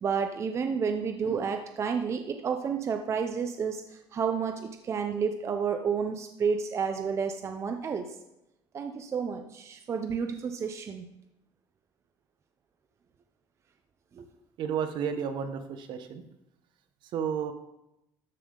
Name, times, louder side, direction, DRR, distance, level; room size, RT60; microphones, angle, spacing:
voice 1, 0.0-8.2 8.7-11.0 14.1-14.2, right 6 dB, 30° right, 6 dB, 0.6 m, -30 dB
voice 2, 14.6-16.2 17.0-17.5, right 7 dB, 60° right, 9 dB, 1.0 m, -32 dB
13.0 x 5.6 x 3.8 m, 0.88 s
cardioid pair, 135°, 9 cm